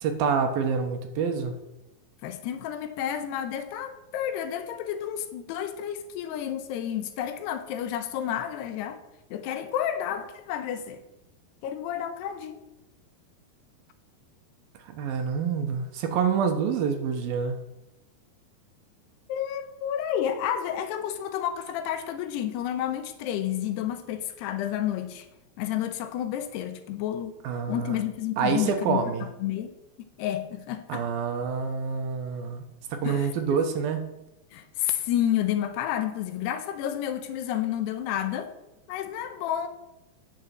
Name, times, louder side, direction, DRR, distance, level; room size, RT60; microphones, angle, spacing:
voice 1, 0.0-1.6 14.9-17.5 27.4-28.0 28.4-29.3 30.9-32.7 32.9-34.1, right 6 dB, 70° right, 6 dB, 2.7 m, -27 dB
voice 2, 2.2-9.0 9.3-11.0 11.6-12.6 19.3-25.3 25.6-27.3 27.7-29.8 30.2-31.1 33.0-33.6 34.5-38.5 38.9-39.7, left 10 dB, 85° left, 9 dB, 3.0 m, -30 dB
9.4 x 6.9 x 7.7 m, 0.92 s
omnidirectional pair, 4.6 m